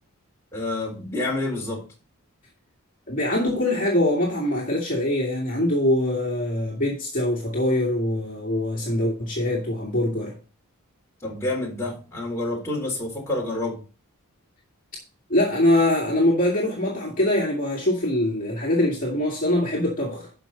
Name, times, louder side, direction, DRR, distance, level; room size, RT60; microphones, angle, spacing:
voice 1, 0.5-1.9 11.2-13.8, left 2 dB, 10° left, 3.7 m, -28 dB
voice 2, 3.1-10.4 15.3-20.3, left 1 dB, 40° left, 2.3 m, -23 dB
12.5 x 5.6 x 4.0 m
head